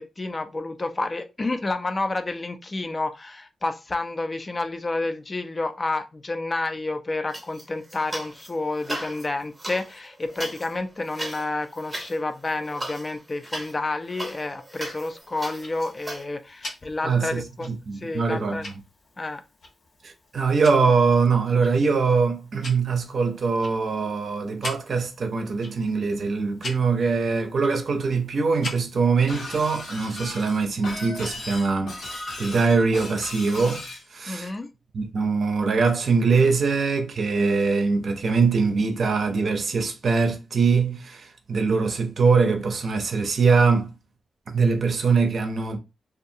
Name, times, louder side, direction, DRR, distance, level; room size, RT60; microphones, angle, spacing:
voice 1, 0.0-18.6 19.2-19.4 34.3-34.7, left 2 dB, 25° left, 0.3 m, -30 dB
sound 1, 7.3-8.5 8.8-16.2, right 1 dB, 15° right, 0.8 m, -37 dB
Tick-tock, 15.2-29.2, left 2 dB, 70° left, 0.9 m, -43 dB
voice 2, 17.0-18.6 20.0-34.5 34.9-43.9 44.5-45.8, right 4 dB, 55° right, 0.5 m, -23 dB
Shatter, 29.3-34.0, left 2 dB, 90° left, 1.1 m, -37 dB
2.7 x 2.4 x 2.6 m
wide cardioid pair, 155°, 0 cm